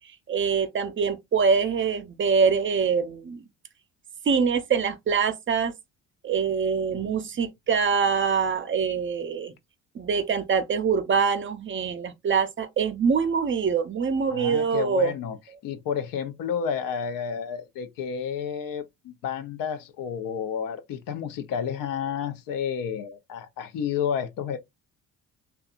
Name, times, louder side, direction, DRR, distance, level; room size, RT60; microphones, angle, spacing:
voice 1, 0.3-3.4 4.3-5.7 6.2-9.5 9.9-15.1, right 6 dB, 35° right, 0.5 m, -24 dB
voice 2, 6.9-7.3 14.3-15.4 15.6-24.6, left 7 dB, 65° left, 0.6 m, -31 dB
2.7 x 2.2 x 2.4 m
supercardioid pair, 65°, 36 cm